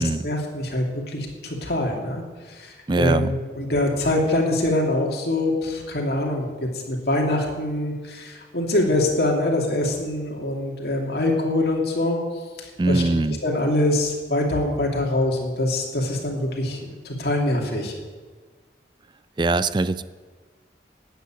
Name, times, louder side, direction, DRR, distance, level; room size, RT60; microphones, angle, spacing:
voice 1, 0.0-2.2 2.5-12.2 12.6-13.0 13.4-16.8 17.0-17.9, left 1 dB, 60° left, 0 dB, 2.7 m, -24 dB
voice 2, 2.9-3.3 12.8-13.4 19.4-20.0, right 2 dB, 25° right, 14 dB, 0.4 m, -22 dB
12.5 x 8.4 x 9.2 m, 1.4 s
head